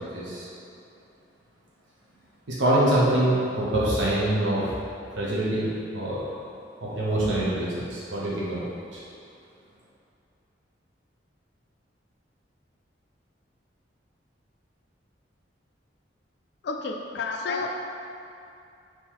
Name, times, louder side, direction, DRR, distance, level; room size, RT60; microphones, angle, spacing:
voice 1, 0.1-0.5 2.5-4.7 5.2-6.2 6.8-8.7 8.9-9.0, right 1 dB, 75° right, -7 dB, 0.8 m, -25 dB
voice 2, 16.6-17.7, left 4 dB, 60° left, 2 dB, 0.3 m, -30 dB
3.6 x 3.0 x 4.5 m, 2.6 s
head